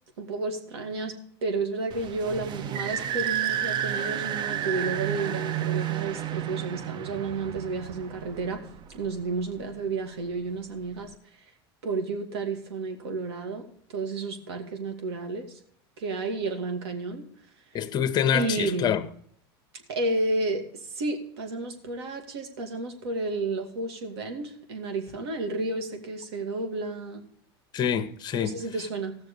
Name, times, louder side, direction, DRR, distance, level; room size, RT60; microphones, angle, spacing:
voice 1, 0.2-1.1 1.4-8.6 8.9-11.1 11.8-13.6 13.9-15.6 16.0-17.2 18.3-19.0 19.9-27.2 28.4-29.2, right 3 dB, 85° right, 2.5 m, -31 dB
sound 1, 1.9-9.2, right 10 dB, 35° right, 0.6 m, -31 dB
voice 2, 17.7-19.0 27.7-28.6, left 9 dB, 30° left, 1.0 m, -26 dB
16.5 x 6.7 x 5.3 m
supercardioid pair, 125°, 13 cm